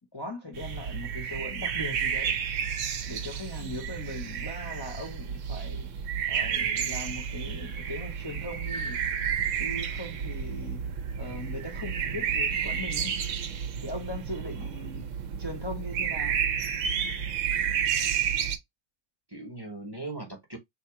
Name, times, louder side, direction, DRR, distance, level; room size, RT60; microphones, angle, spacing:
voice 1, 0.1-2.4 3.1-5.9 6.3-9.0 9.5-10.8 11.2-13.2 13.8-15.1 15.4-16.4, left 1 dB, 20° left, 0.8 m, -39 dB
sound 1, 0.5-18.6, right 7 dB, 65° right, 1.0 m, -31 dB
voice 2, 14.6-15.1 19.3-20.6, right 2 dB, 20° right, 0.9 m, -40 dB
3.5 x 2.6 x 4.6 m
omnidirectional pair, 1.5 m